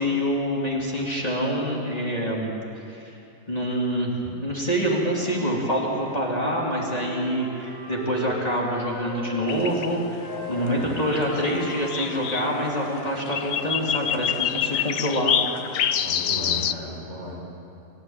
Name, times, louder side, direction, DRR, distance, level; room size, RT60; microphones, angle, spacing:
voice 1, 0.0-3.2 3.5-15.3, equal, 30° left, -3 dB, 3.1 m, -26 dB
Wind instrument woodwind instrument, 5.1-9.5 10.2-13.9, left 1 dB, 15° right, 7.3 m, -39 dB
sound 1, 9.5-16.7, left 9 dB, 90° left, 1.1 m, -28 dB
voice 2, 10.5-11.0 15.9-17.4, equal, 55° right, -5 dB, 7.3 m, -35 dB
25.5 x 14.5 x 8.9 m, 2.8 s
omnidirectional pair, 1.4 m